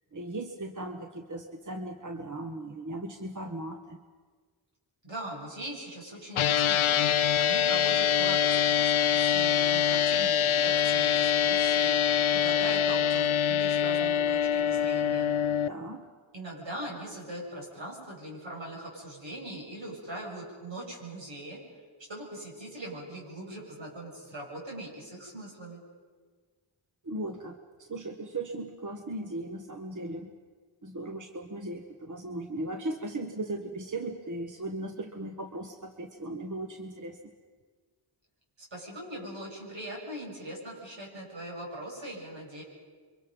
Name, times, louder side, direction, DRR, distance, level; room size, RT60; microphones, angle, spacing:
voice 1, 0.1-4.0 15.7-16.1 27.0-30.3 30.8-37.2, right 2 dB, 40° right, 5 dB, 1.4 m, -37 dB
voice 2, 5.0-15.3 16.3-21.6 22.0-25.8 38.6-42.6, right 1 dB, 70° right, -2 dB, 7.2 m, -41 dB
sound 1, 6.4-15.7, left 9 dB, 80° left, 0.7 m, -25 dB
28.0 x 24.0 x 5.4 m, 1.5 s
wide cardioid pair, 65°, 48 cm